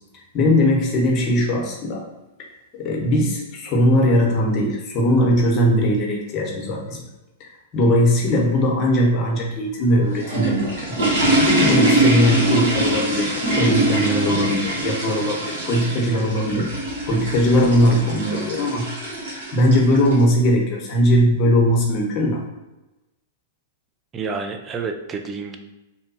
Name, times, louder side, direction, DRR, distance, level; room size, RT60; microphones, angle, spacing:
voice 1, 0.1-2.1 2.7-7.0 7.4-11.0 11.3-16.7 17.1-18.9 19.3-22.4, equal, 35° left, -1 dB, 0.8 m, -19 dB
sound 1, 9.9-20.2, right 1 dB, 75° right, 1.1 m, -23 dB
voice 2, 24.1-25.6, right 4 dB, 25° right, 5 dB, 0.3 m, -29 dB
2.7 x 2.2 x 2.6 m, 1.0 s
hypercardioid pair, 120°, 0 cm